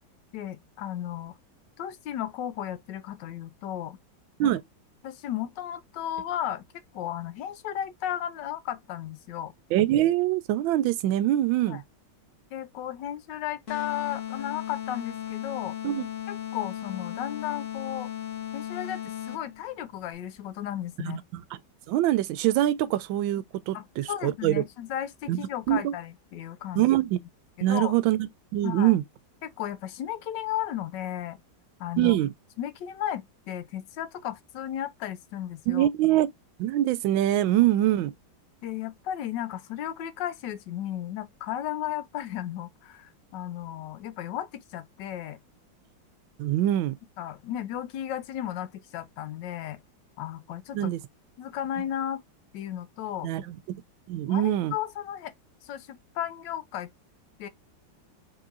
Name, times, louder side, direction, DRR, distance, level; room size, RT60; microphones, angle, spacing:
voice 1, 0.3-1.3 1.8-4.0 4.4-4.5 5.0-6.6 6.9-9.5 11.7-11.8 12.5-15.7 16.3-18.1 18.5-21.2 23.7-26.9 27.6-27.9 28.6-28.9 29.4-31.4 31.8-32.2 32.6-35.9 38.6-45.4 47.2-49.8 50.2-50.9 51.4-52.2 52.5-53.3 54.3-55.3 55.6-56.9 57.4-57.5, left 11 dB, 75° left, 1.2 m, -34 dB
voice 2, 9.7-11.8 15.8-16.0 21.0-21.4 21.9-24.6 25.3-25.4 25.7-25.9 26.8-27.2 27.6-29.0 32.0-32.3 35.7-36.3 36.6-38.1 46.4-46.9 50.7-51.0 53.2-53.8 54.1-54.7, right 13 dB, 90° right, 1.3 m, -24 dB
sound 1, 13.7-19.6, left 11 dB, 50° left, 1.1 m, -36 dB
4.2 x 3.9 x 2.4 m
omnidirectional pair, 2.1 m